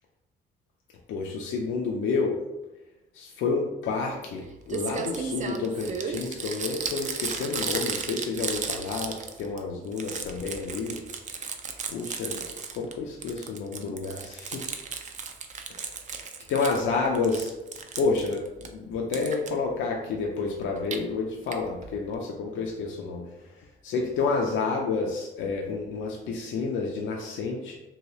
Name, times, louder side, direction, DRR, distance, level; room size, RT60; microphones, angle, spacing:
voice 1, 1.1-2.4 3.1-11.0 11.9-12.4 12.7-14.7 16.1-17.5 18.0-23.3 23.8-27.8, left 4 dB, 75° left, 0 dB, 0.4 m, -29 dB
Crumpling crinkling, 4.4-4.5 4.7-9.6 9.9-12.9 13.2-16.8 17.1-18.7 19.1-19.5 20.6-21.0 21.5-21.6 21.8-21.9 22.1-22.2, right 5 dB, 40° right, 0.4 m, -34 dB
2.8 x 2.6 x 3.0 m, 1.0 s
cardioid pair, 90°, 20 cm